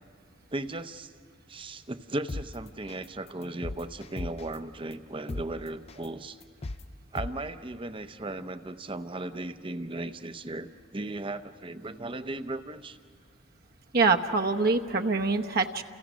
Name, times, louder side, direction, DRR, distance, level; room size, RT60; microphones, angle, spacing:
voice 1, 0.5-1.1 1.5-6.4 7.1-13.0, right 2 dB, 25° right, 10 dB, 0.8 m, -36 dB
sound 1, 2.3-2.4 2.9-3.1 3.4-4.5 4.9-5.0 5.3-5.4 5.9-6.1 6.4-6.8 7.2-7.3, left 2 dB, 30° left, 0.6 m, -35 dB
voice 2, 13.9-15.8, right 4 dB, 50° right, 4 dB, 1.0 m, -24 dB
30.0 x 29.5 x 6.2 m, 2.2 s
head